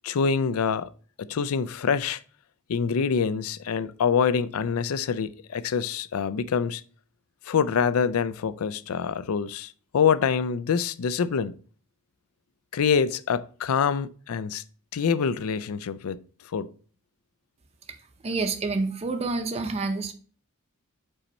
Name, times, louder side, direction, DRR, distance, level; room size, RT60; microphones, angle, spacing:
voice 1, 0.0-0.9 1.2-2.2 2.7-6.8 7.5-11.5 12.7-14.6 14.9-16.2 16.5-16.7, left 6 dB, 75° left, 0.4 m, -25 dB
voice 2, 18.2-20.1, right 3 dB, 30° right, 0.6 m, -28 dB
5.5 x 4.2 x 5.1 m
head